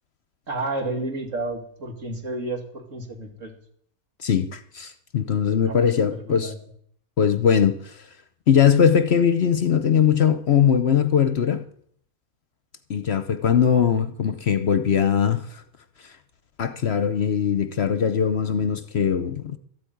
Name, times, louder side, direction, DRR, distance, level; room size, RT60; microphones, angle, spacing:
voice 1, 0.5-3.5 5.6-6.6, right 2 dB, 60° right, 2.8 m, -31 dB
voice 2, 4.2-6.5 7.2-8.0 8.5-11.6 12.9-15.6 16.6-19.6, left 8 dB, 55° left, 0.9 m, -20 dB
13.5 x 8.4 x 9.3 m
omnidirectional pair, 1.5 m